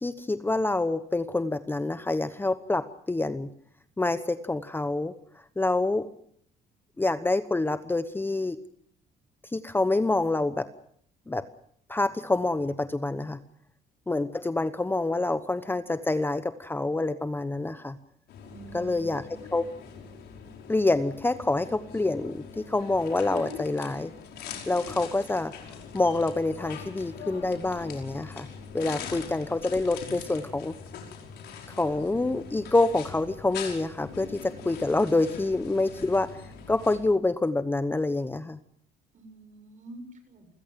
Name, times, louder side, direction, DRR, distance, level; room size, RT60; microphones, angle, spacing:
voice 1, 0.0-3.5 4.0-5.1 5.6-6.1 7.0-8.6 9.5-10.7 11.3-11.5 11.9-13.4 14.1-18.0 18.7-19.7 20.7-24.1 24.7-25.5 25.9-28.5 28.7-30.7 31.7-36.3 36.7-38.6, left 2 dB, 10° left, 12 dB, 1.0 m, -27 dB
sound 1, 18.3-37.0, left 6 dB, 75° left, 5.4 m, -42 dB
voice 2, 18.5-19.4 39.1-40.5, right 3 dB, 45° right, 7 dB, 6.8 m, -47 dB
29.0 x 16.0 x 7.6 m, 0.67 s
cardioid pair, 110°, 17 cm